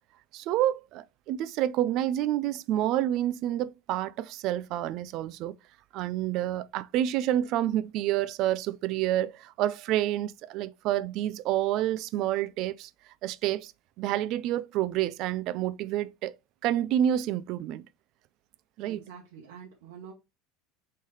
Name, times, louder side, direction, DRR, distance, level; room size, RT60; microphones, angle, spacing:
voice 1, 0.3-5.5 5.9-12.9 13.2-13.7 14.0-16.4 16.6-17.8 18.8-19.0, right 12 dB, 55° right, 0.4 m, -28 dB
voice 2, 18.9-20.1, right 7 dB, 80° right, 0.9 m, -46 dB
3.8 x 3.2 x 4.0 m
supercardioid pair, 120°, 0 cm